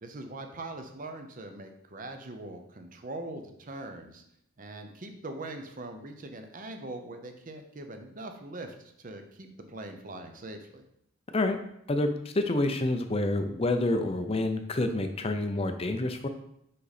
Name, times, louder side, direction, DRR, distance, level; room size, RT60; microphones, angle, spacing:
voice 1, 0.0-4.2 4.6-10.8, right 2 dB, 40° right, 6 dB, 0.7 m, -42 dB
voice 2, 11.9-16.3, left 2 dB, 30° left, 7 dB, 0.5 m, -28 dB
5.5 x 5.1 x 4.2 m, 0.76 s
head